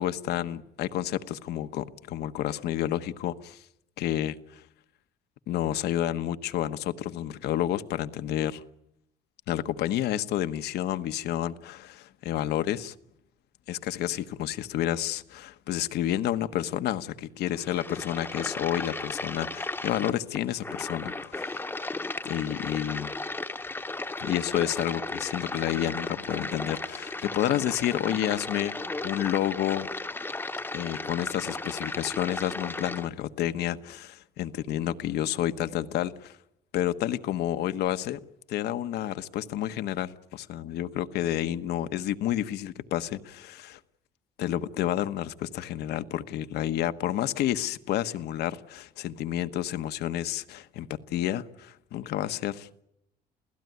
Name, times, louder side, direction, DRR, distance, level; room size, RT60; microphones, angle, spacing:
voice 1, 0.0-3.6 4.0-4.6 5.5-8.6 9.5-12.9 13.7-21.6 22.2-23.1 24.2-29.9 30.7-36.4 36.7-38.2 38.5-43.8 44.4-52.8, left 12 dB, 75° left, 1.2 m, -30 dB
sound 1, 17.5-33.1, left 2 dB, 10° left, 1.0 m, -35 dB
28.0 x 16.5 x 9.4 m
cardioid pair, 110°, 17 cm